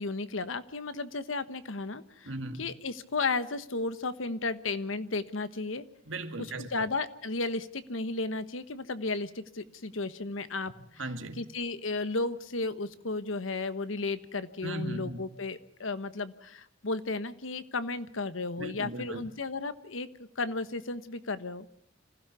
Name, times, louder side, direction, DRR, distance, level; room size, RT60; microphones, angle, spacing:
voice 1, 0.0-2.3 2.6-5.8 6.4-10.7 11.4-21.7, left 3 dB, 85° left, 1.3 m, -34 dB
voice 2, 2.3-2.7 6.1-6.9 11.0-11.4 14.6-15.2 18.6-19.3, right 2 dB, 70° right, 2.3 m, -37 dB
27.0 x 16.0 x 7.0 m
head